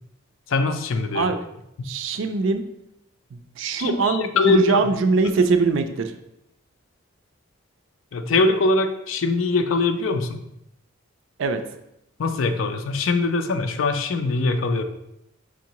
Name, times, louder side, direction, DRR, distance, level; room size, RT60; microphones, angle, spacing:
voice 1, 0.5-1.3 3.8-4.8 8.1-10.4 12.2-14.8, left 3 dB, 65° left, 8 dB, 0.4 m, -22 dB
voice 2, 1.8-2.6 3.3-6.1 11.4-11.6, right 4 dB, 60° right, 8 dB, 0.4 m, -22 dB
5.0 x 3.6 x 2.9 m, 0.81 s
head